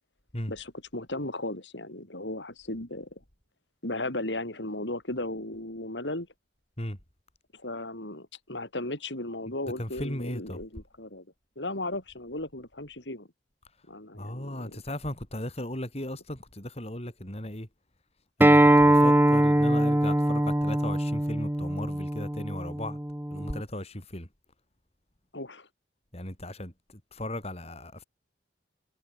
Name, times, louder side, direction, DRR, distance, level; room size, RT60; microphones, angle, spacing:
voice 1, 0.5-3.1 3.8-6.3 7.5-11.2 11.6-13.3 13.9-14.8 25.3-25.7, left 1 dB, 85° left, 7.6 m, -36 dB
voice 2, 9.8-10.6 14.1-17.7 18.4-23.0 23.3-24.3 26.1-26.7 27.1-28.0, left 1 dB, 35° left, 4.9 m, -36 dB
Acoustic guitar, 18.4-23.6, right 1 dB, 10° right, 0.9 m, -22 dB
head